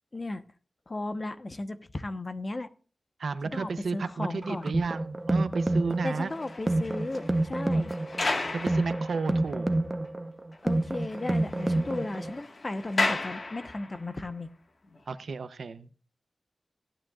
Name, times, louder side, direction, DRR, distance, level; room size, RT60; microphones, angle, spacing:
voice 1, 0.1-0.4 0.9-2.7 3.4-4.7 6.0-7.9 10.6-14.5, left 2 dB, 40° left, 9 dB, 1.0 m, -35 dB
voice 2, 3.2-6.3 8.5-9.7 15.1-15.9, right 4 dB, 90° right, 12 dB, 0.7 m, -32 dB
sound 1, 4.4-12.4, right 2 dB, 25° right, 0.8 m, -29 dB
sound 2, 6.0-9.7 10.0-10.1 10.5-10.6 10.9-14.1 14.8-15.0, left 2 dB, 60° left, 1.6 m, -35 dB
17.5 x 10.0 x 2.4 m, 0.40 s
wide cardioid pair, 70°, 0 cm